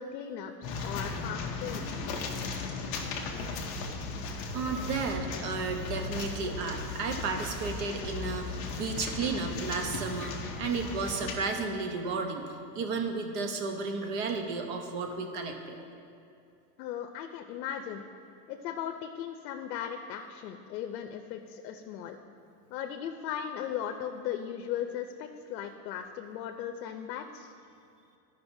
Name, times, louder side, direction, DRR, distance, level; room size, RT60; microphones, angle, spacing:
voice 1, 0.0-2.2 16.8-18.0 18.5-22.2 22.7-27.5, left 9 dB, 80° left, 5 dB, 0.6 m, -37 dB
sound 1, 0.6-11.3, left 3 dB, 30° left, 0.5 m, -36 dB
voice 2, 4.5-15.8, right 4 dB, 45° right, 4 dB, 0.8 m, -33 dB
12.0 x 5.5 x 2.6 m, 2.5 s
supercardioid pair, 165°, 50 cm